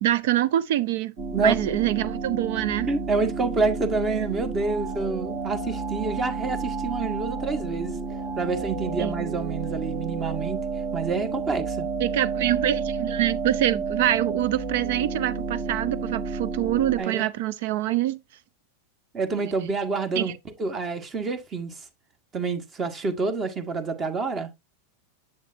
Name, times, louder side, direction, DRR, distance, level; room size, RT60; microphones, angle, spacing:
voice 1, 0.0-2.9 9.0-9.2 12.0-18.2 19.3-19.5 20.1-20.3, right 13 dB, 65° right, 0.7 m, -25 dB
sound 1, 1.2-17.0, right 4 dB, 50° right, 2.4 m, -31 dB
voice 2, 2.9-7.9 8.4-10.6 10.9-11.9 17.0-17.2 19.1-20.3 20.6-21.8 22.3-24.5, right 4 dB, 30° right, 1.6 m, -27 dB
7.5 x 7.2 x 2.6 m
hypercardioid pair, 110°, 0 cm